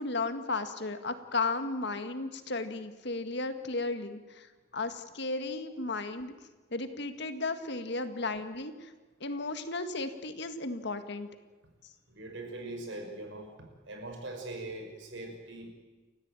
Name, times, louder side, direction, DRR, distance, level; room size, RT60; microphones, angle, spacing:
voice 1, 0.0-4.5 4.7-6.3 6.7-8.9 9.2-11.3, left 3 dB, 60° left, 9 dB, 1.8 m, -34 dB
voice 2, 12.1-13.5 13.8-15.7, right 2 dB, 65° right, 4 dB, 5.5 m, -41 dB
30.0 x 14.5 x 9.0 m, 1.3 s
head